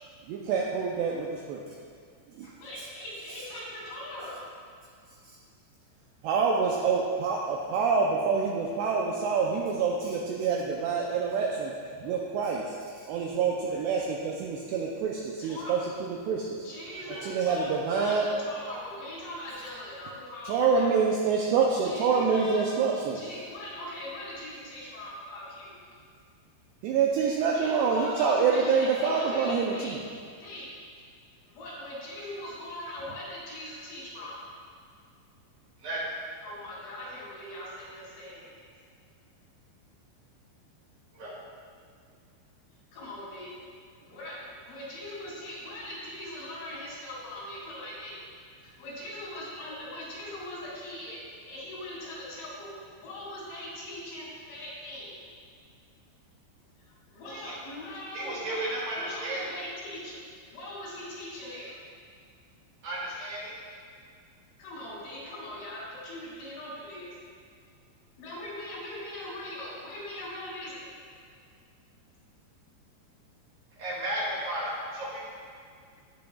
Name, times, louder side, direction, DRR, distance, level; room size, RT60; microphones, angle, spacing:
voice 1, 0.2-1.6 2.3-2.5 6.2-11.7 12.0-16.7 17.2-18.3 20.5-23.2 26.8-30.0, right 5 dB, 80° right, -2 dB, 2.5 m, -26 dB
voice 2, 2.4-4.4 13.7-13.8 15.4-15.7 16.6-20.9 21.8-22.7 23.1-25.8 27.5-29.9 30.4-30.7 31.4-34.4 36.4-38.7 41.1-41.3 42.9-43.5 44.1-44.4 44.7-48.2 48.6-51.2 51.4-55.2 56.9-61.8 64.6-67.1 68.2-70.8, left 1 dB, 60° left, -6 dB, 4.4 m, -41 dB
voice 3, 16.9-17.3 35.8-36.0 41.2-41.3 57.3-57.6 58.1-59.4 62.8-63.5 73.8-75.3, right 1 dB, 55° right, -7 dB, 3.6 m, -34 dB
17.5 x 6.8 x 2.4 m, 2.1 s
omnidirectional pair, 5.4 m